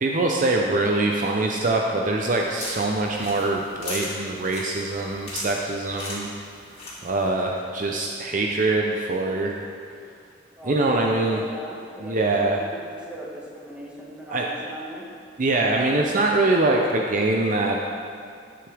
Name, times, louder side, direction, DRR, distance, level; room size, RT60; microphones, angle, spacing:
voice 1, 0.0-6.3 7.0-9.6 10.6-11.5 12.0-12.6 14.3-14.4 15.4-17.8, right 2 dB, 45° right, 0 dB, 0.6 m, -23 dB
sound 1, 2.2-7.3, left 2 dB, 35° left, 2.5 m, -38 dB
voice 2, 10.6-15.0, equal, 5° right, -5 dB, 1.7 m, -39 dB
12.5 x 7.8 x 3.5 m, 2.2 s
head